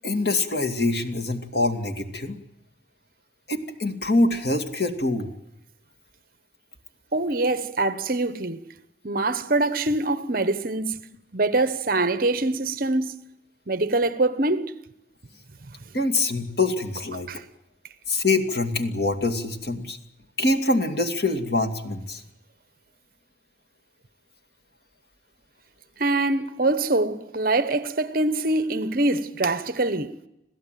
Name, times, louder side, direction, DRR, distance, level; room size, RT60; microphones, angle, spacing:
voice 1, 0.0-2.4 3.5-5.3 15.9-17.3 18.1-20.0 20.4-22.2, left 2 dB, 60° left, 2.5 m, -24 dB
voice 2, 7.1-8.6 9.0-10.9 11.3-13.2 13.7-14.7 17.3-17.4 26.0-30.2, right 2 dB, 50° right, 1.1 m, -24 dB
27.5 x 16.0 x 9.2 m
head